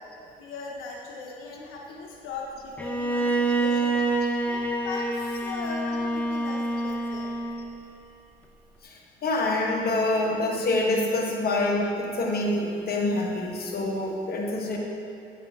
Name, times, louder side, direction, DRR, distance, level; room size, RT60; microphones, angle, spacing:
voice 1, 0.4-4.0 4.5-5.2 5.4-7.3, left 4 dB, 85° left, -2 dB, 0.7 m, -39 dB
Bowed string instrument, 2.8-7.8, right 2 dB, 10° left, 0.6 m, -27 dB
voice 2, 8.8-14.8, left 2 dB, 50° left, -1 dB, 1.1 m, -26 dB
8.1 x 5.0 x 3.4 m, 2.8 s
cardioid pair, 90°, 20 cm